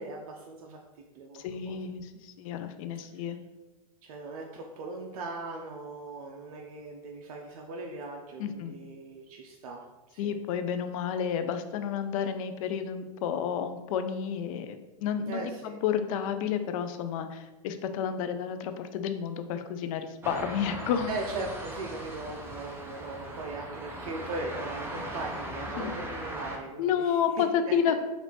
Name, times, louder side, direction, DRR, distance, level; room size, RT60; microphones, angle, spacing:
voice 1, 0.0-1.8 3.1-3.3 4.0-9.8 10.1-10.4 15.3-15.8 21.1-27.2 27.7-27.8, right 2 dB, 75° right, 1 dB, 0.5 m, -39 dB
voice 2, 1.4-3.4 8.4-8.8 10.2-21.1 25.8-25.9 26.8-28.0, left 8 dB, 65° left, 9 dB, 0.4 m, -31 dB
sound 1, 20.2-26.6, right 1 dB, 10° right, 0.5 m, -39 dB
3.3 x 2.5 x 2.9 m, 1.1 s
hypercardioid pair, 110°, 19 cm